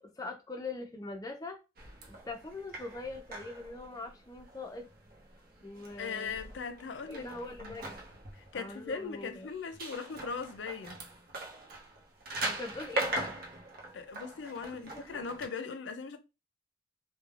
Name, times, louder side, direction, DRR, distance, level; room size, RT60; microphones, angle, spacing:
voice 1, 0.0-1.6 2.1-4.9 5.6-6.4 7.1-8.0 8.5-9.5 12.4-13.3 14.6-15.3, left 3 dB, 20° left, 0.5 m, -42 dB
sound 1, 1.8-15.5, right 2 dB, 55° right, 0.7 m, -41 dB
voice 2, 6.0-7.3 7.6-7.8 8.3-11.0 13.9-16.2, left 5 dB, 85° left, 0.5 m, -39 dB
3.2 x 2.1 x 2.4 m
head